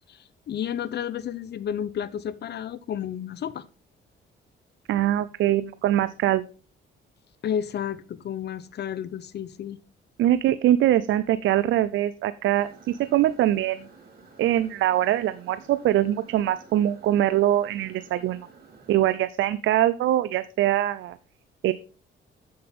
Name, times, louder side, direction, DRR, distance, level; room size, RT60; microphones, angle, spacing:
voice 1, 0.5-3.6 7.4-9.8, left 9 dB, 60° left, 0.8 m, -31 dB
voice 2, 4.9-6.5 10.2-13.9 14.4-18.4 18.9-21.2 21.6-21.7, right 13 dB, 75° right, 0.5 m, -23 dB
sound 1, 12.5-19.2, right 5 dB, 50° right, 3.0 m, -52 dB
8.6 x 7.8 x 3.6 m
cardioid pair, 90°, 20 cm